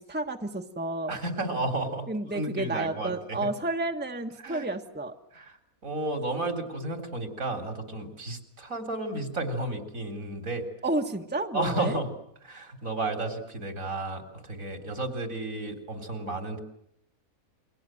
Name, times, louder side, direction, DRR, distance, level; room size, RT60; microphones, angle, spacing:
voice 1, 0.0-1.2 2.1-5.1 10.8-12.0, right 2 dB, 5° right, 5 dB, 1.5 m, -31 dB
voice 2, 1.1-2.1 2.3-3.5 4.4-4.7 5.3-5.5 5.8-10.6 11.5-12.1 12.4-16.6, right 2 dB, 70° right, 7 dB, 4.3 m, -32 dB
29.0 x 23.5 x 7.8 m, 0.76 s
omnidirectional pair, 1.5 m